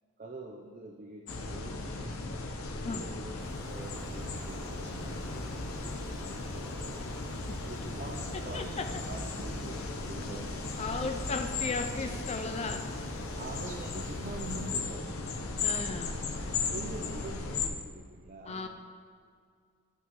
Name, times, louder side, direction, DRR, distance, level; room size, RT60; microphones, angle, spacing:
voice 1, 0.2-2.1 2.8-3.3 3.7-6.9 7.7-8.7 9.1-10.9 13.3-15.1 16.4-18.7, right 2 dB, 40° right, 1 dB, 0.7 m, -45 dB
sound 1, 1.3-17.7, left 3 dB, 80° left, 0.9 m, -36 dB
sound 2, 3.4-14.9, right 1 dB, 15° right, 1.8 m, -49 dB
sound 3, 4.2-12.0, left 1 dB, 60° left, 1.6 m, -48 dB
voice 2, 8.5-8.9 10.8-12.8 15.6-16.2 18.4-18.7, left 3 dB, 30° left, 5 dB, 0.5 m, -35 dB
13.0 x 9.1 x 3.1 m, 2.2 s
head